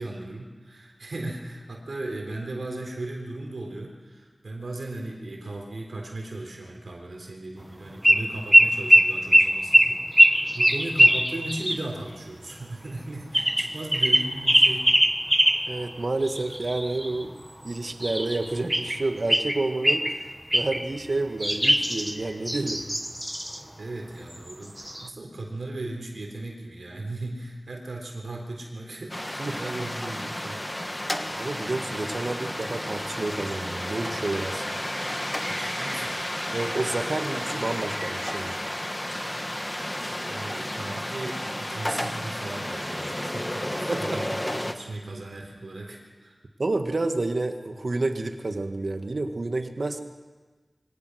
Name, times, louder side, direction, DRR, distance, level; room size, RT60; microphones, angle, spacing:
voice 1, 0.0-14.9 23.8-30.6 35.5-36.3 38.8-39.2 39.8-46.4, right 2 dB, 80° right, 1 dB, 3.8 m, -37 dB
sound 1, 8.0-8.2 8.5-11.8 13.3-15.7 16.2-17.2 18.0-19.0 19.3-20.2 20.5-20.9 21.4-23.6 24.5-24.6 24.8-25.1, equal, 5° right, 1.3 m, -20 dB
voice 2, 15.7-17.4 17.6-20.0 20.5-22.8 29.4-29.6 31.3-34.6 36.5-38.6 43.9-44.2 46.6-50.0, right 2 dB, 60° right, 6 dB, 1.7 m, -29 dB
sound 2, 29.1-44.7, left 1 dB, 20° left, 1.4 m, -32 dB
23.5 x 17.5 x 6.4 m, 1.3 s
wide cardioid pair, 50°, 0 cm